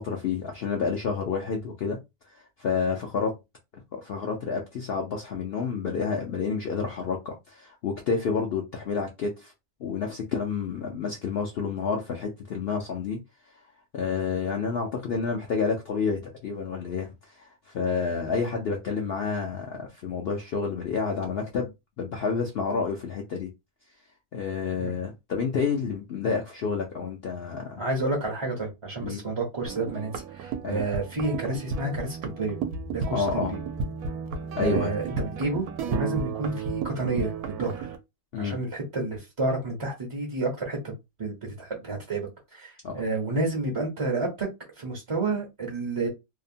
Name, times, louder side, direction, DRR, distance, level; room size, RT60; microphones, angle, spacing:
voice 1, 0.0-2.0 2.3-3.4 3.7-9.5 9.8-13.2 13.9-21.7 22.0-23.5 24.3-27.8 29.0-29.2 30.6-30.8 33.1-33.5 34.6-34.9 38.3-38.6 42.8-43.0, left 5 dB, 65° left, 0.6 m, -29 dB
voice 2, 27.8-32.6 32.9-33.6 34.5-37.3 37.6-37.9 38.4-44.5 44.8-46.1, right 2 dB, 35° right, 0.5 m, -30 dB
sound 1, 29.7-38.0, right 5 dB, 85° right, 1.1 m, -33 dB
2.8 x 2.1 x 2.6 m
omnidirectional pair, 1.5 m